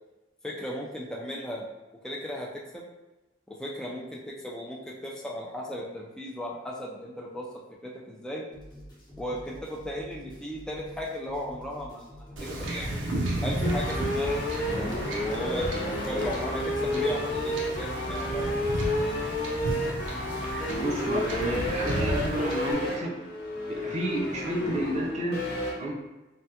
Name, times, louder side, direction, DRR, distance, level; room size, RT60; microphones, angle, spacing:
voice 1, 0.4-1.7 2.0-2.5 2.7-2.8 3.5-7.5 7.8-8.5 9.2-13.0 13.4-18.7, equal, 5° left, -3 dB, 0.3 m, -36 dB
sound 1, 8.5-20.5, equal, 25° left, 0.8 m, -47 dB
Wind / Ocean / Boat Water vehicle, 12.4-22.7, right 1 dB, 85° right, 0.6 m, -33 dB
sound 2, 13.6-25.7, left 1 dB, 60° left, 0.6 m, -31 dB
voice 2, 20.8-23.2 23.7-25.4 25.7-26.0, right 1 dB, 40° right, -2 dB, 0.6 m, -30 dB
3.4 x 2.1 x 2.7 m, 1.1 s
head